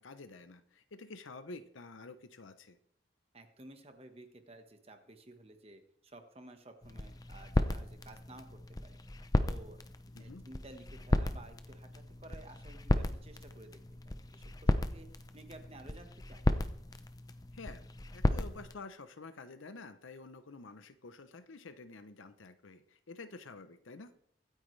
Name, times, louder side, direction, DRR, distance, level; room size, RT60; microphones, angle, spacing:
voice 1, 0.0-2.8 10.1-10.4 17.5-17.9 18.1-24.1, left 3 dB, 80° left, 10 dB, 0.8 m, -49 dB
voice 2, 3.3-9.0 9.5-9.8 10.2-13.8 14.0-15.1 15.3-16.5, right 2 dB, 30° right, 6 dB, 1.4 m, -54 dB
sound 1, 6.8-18.8, left 1 dB, 20° left, 0.6 m, -34 dB
24.0 x 9.3 x 3.3 m, 0.70 s
head